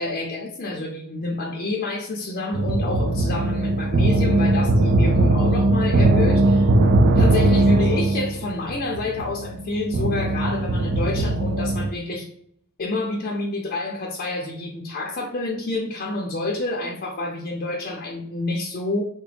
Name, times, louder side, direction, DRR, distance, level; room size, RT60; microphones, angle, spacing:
voice 1, 0.0-6.8 7.1-12.3 12.8-19.0, left 2 dB, 40° left, 0.6 m, -28 dB
sound 1, 2.5-11.9, right 2 dB, 45° right, 0.3 m, -19 dB
3.8 x 2.2 x 3.3 m
head